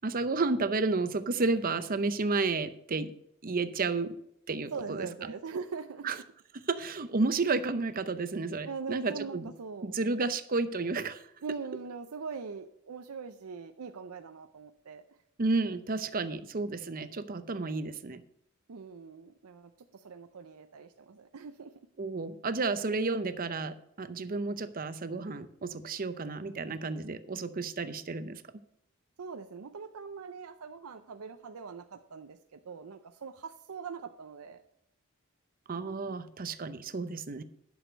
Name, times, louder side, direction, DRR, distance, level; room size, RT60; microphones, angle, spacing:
voice 1, 0.0-3.1 3.4-4.2 4.5-5.1 6.0-6.2 6.7-9.5 9.8-11.2 15.4-18.2 22.0-28.4 35.7-37.4, right 3 dB, 40° right, 11 dB, 0.7 m, -31 dB
voice 2, 4.7-6.1 8.7-9.9 11.4-15.0 18.7-21.9 29.2-34.6, right 5 dB, 80° right, 7 dB, 0.5 m, -42 dB
11.0 x 6.4 x 5.2 m, 0.76 s
head